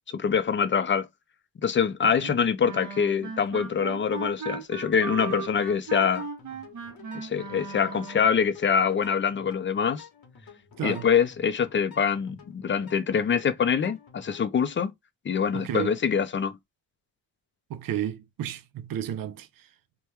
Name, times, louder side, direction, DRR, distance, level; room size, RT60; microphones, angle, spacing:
voice 1, 0.1-1.1 1.6-6.3 7.1-10.0 10.8-14.9 15.3-16.6, left 7 dB, 35° left, 0.4 m, -25 dB
Wind instrument woodwind instrument, 2.6-8.4, right 5 dB, 55° right, 0.9 m, -37 dB
sound 1, 4.9-14.5, left 6 dB, 80° left, 1.2 m, -51 dB
voice 2, 10.8-11.1 15.5-15.9 17.7-19.5, right 10 dB, 70° right, 0.5 m, -32 dB
3.0 x 2.2 x 3.2 m
cardioid pair, 100°, 35 cm